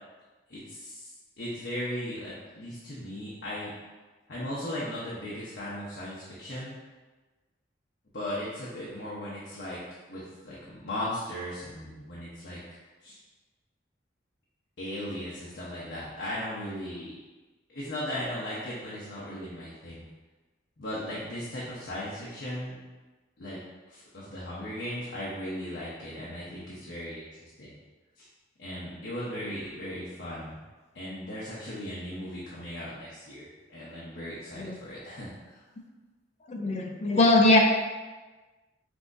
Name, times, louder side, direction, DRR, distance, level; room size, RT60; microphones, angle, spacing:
voice 1, 0.5-3.7 4.3-6.7 8.1-9.8 10.1-13.2 14.8-17.2 17.7-20.0 20.8-22.8 23.4-23.6 23.9-27.8 28.2-28.3 28.6-30.6 30.9-35.6, left 1 dB, 65° left, -8 dB, 0.9 m, -37 dB
voice 2, 36.5-37.6, left 2 dB, 40° left, 2 dB, 0.5 m, -21 dB
6.0 x 2.9 x 2.6 m, 1.3 s
head